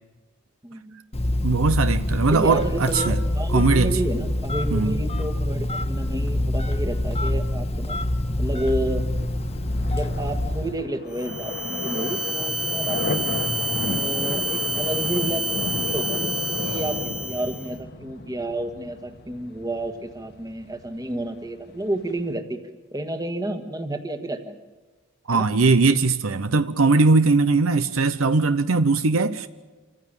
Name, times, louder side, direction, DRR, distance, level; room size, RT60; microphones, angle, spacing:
voice 1, 0.6-1.0 2.3-8.0 8.4-9.0 9.9-13.3 13.8-22.6 22.9-24.6 25.3-25.5, right 1 dB, 20° right, 1.6 m, -30 dB
Telephone, 1.1-10.8, left 1 dB, 30° left, 1.4 m, -25 dB
voice 2, 1.4-3.2 3.5-3.9 4.7-5.0 25.3-29.5, right 3 dB, 75° right, 0.8 m, -20 dB
sound 1, 8.4-22.4, left 2 dB, 50° left, 1.4 m, -33 dB
sound 2, 11.1-17.7, equal, ahead, 1.9 m, -28 dB
27.0 x 15.0 x 9.0 m
head